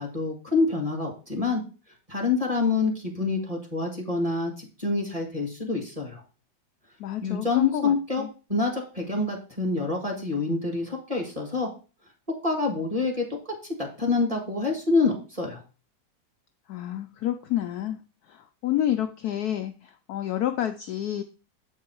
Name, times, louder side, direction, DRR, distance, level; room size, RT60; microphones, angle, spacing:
voice 1, 0.0-1.6 2.1-6.2 7.2-8.2 8.5-11.7 12.4-13.3 13.8-15.6, left 3 dB, 20° right, 2 dB, 1.5 m, -26 dB
voice 2, 7.0-8.3 16.7-18.0 18.3-21.2, left 12 dB, 70° left, 7 dB, 0.9 m, -29 dB
7.6 x 4.6 x 4.4 m, 0.35 s
omnidirectional pair, 2.0 m